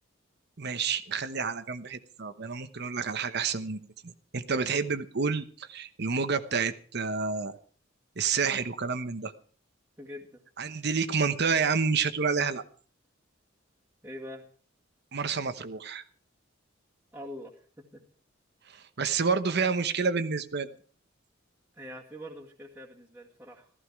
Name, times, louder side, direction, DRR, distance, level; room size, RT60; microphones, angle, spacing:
voice 1, 0.6-7.6 8.2-9.3 10.6-12.6 15.1-16.0 18.7-20.7, right 5 dB, 55° right, 11 dB, 1.0 m, -29 dB
voice 2, 10.0-10.4 10.7-10.8 14.0-14.5 17.1-18.0 21.7-23.7, left 1 dB, 10° right, -3 dB, 2.0 m, -44 dB
15.0 x 14.5 x 4.7 m, 0.43 s
head